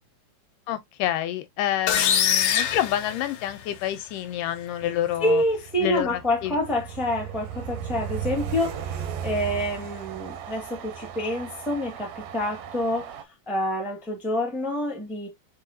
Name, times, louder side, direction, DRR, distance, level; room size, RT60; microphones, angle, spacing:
voice 1, 0.7-5.4 5.8-6.6, left 12 dB, 90° left, 2.4 m, -28 dB
sound 1, 1.9-3.8, left 9 dB, 70° left, 2.1 m, -23 dB
Train, 4.8-13.2, right 8 dB, 75° right, 1.7 m, -36 dB
voice 2, 5.2-13.1 13.5-15.3, left 1 dB, ahead, 1.0 m, -27 dB
4.7 x 4.1 x 2.7 m
omnidirectional pair, 3.7 m